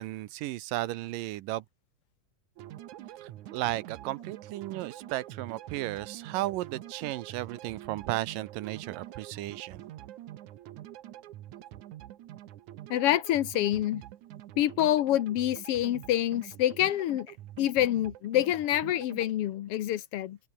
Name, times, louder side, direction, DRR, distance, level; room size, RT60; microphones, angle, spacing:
voice 1, 0.0-1.6 3.2-9.9, right 16 dB, 90° right, 2.5 m, -34 dB
sound 1, 2.6-19.3, right 13 dB, 65° right, 2.4 m, -46 dB
voice 2, 12.9-14.0 14.6-20.4, left 12 dB, 80° left, 1.3 m, -27 dB
omnidirectional pair, 3.9 m